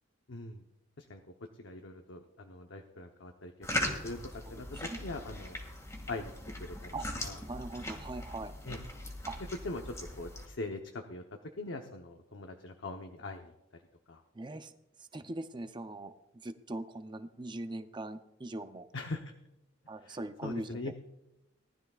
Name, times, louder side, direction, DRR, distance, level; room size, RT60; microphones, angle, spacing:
voice 1, 0.3-0.6 1.0-1.2 1.6-3.5 3.8-5.6 6.1-6.3 6.6-6.9 7.2-7.4 8.7-8.8 9.6-11.2 11.6-13.5 14.1-14.2 18.9-19.3 20.0-20.9, left 2 dB, 65° left, 4 dB, 0.9 m, -42 dB
sound 1, 3.6-10.5, left 1 dB, 15° left, 2.1 m, -40 dB
voice 2, 7.5-8.5 9.3-9.4 14.3-14.7 15.0-16.1 16.4-18.9 19.9-20.9, right 2 dB, 25° right, 9 dB, 0.6 m, -41 dB
19.0 x 12.5 x 2.4 m, 0.89 s
head